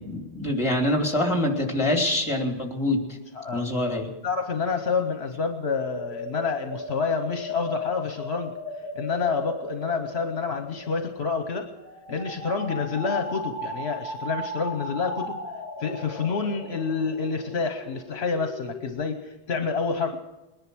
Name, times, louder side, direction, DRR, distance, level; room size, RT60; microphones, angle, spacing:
voice 1, 0.0-3.0 3.5-4.1, left 1 dB, 25° left, 2 dB, 2.7 m, -25 dB
voice 2, 3.3-3.7 4.2-8.5 8.9-11.7 12.1-15.4 15.8-20.2, left 5 dB, 70° left, 6 dB, 1.2 m, -28 dB
sound 1, 5.6-18.9, left 1 dB, 50° right, 4.2 m, -37 dB
20.5 x 10.5 x 6.1 m, 1.1 s
omnidirectional pair, 1.1 m